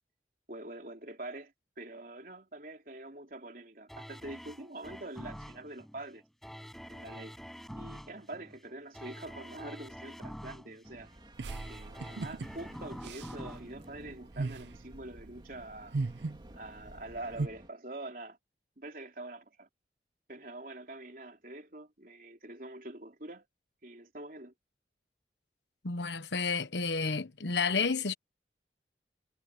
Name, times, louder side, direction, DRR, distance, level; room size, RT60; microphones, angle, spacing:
voice 1, 0.5-6.2 6.8-7.4 7.7-11.1 11.7-16.0 16.5-18.4 18.8-19.7 20.3-23.5 23.8-24.5, right 2 dB, 50° right, 3.9 m, -45 dB
sound 1, 3.9-14.8 15.3-15.4, equal, ahead, 6.1 m, -47 dB
sound 2, 10.8-17.7, right 1 dB, 25° right, 3.2 m, -54 dB
sound 3, 11.4-17.5, right 3 dB, 85° right, 0.6 m, -39 dB
voice 2, 25.8-28.1, left 4 dB, 85° left, 1.1 m, -31 dB
head